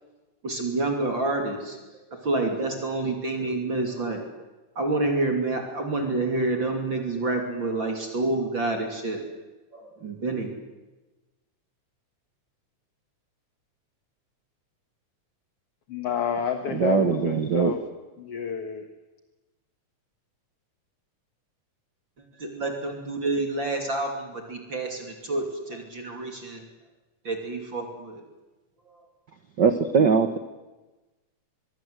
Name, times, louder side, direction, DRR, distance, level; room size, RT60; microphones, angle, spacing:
voice 1, 0.4-1.8 2.1-4.3 4.7-9.3 9.7-10.5 22.4-26.7 27.2-28.2 28.9-29.0, right 2 dB, 40° right, 3 dB, 3.3 m, -28 dB
voice 2, 15.9-17.8 18.2-18.9, left 7 dB, 55° left, 6 dB, 2.3 m, -29 dB
voice 3, 16.7-17.7 29.6-30.4, right 6 dB, 60° right, 9 dB, 1.1 m, -21 dB
24.5 x 22.5 x 8.1 m, 1.1 s
omnidirectional pair, 3.6 m